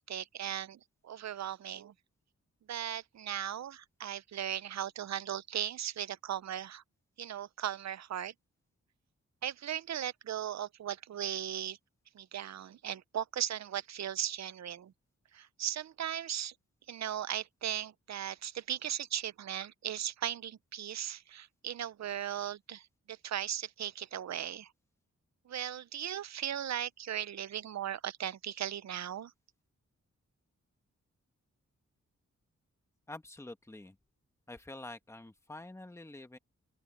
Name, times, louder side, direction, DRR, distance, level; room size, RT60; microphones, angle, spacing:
voice 1, 0.0-1.9 2.7-6.8 7.2-8.3 9.4-11.8 12.1-14.9 15.3-16.5 16.9-24.7 25.5-29.3, right 10 dB, 65° right, 0.5 m, -37 dB
voice 2, 33.1-34.0 34.5-36.4, left 2 dB, 10° left, 1.3 m, -47 dB
open air
wide cardioid pair, 175°, 29 cm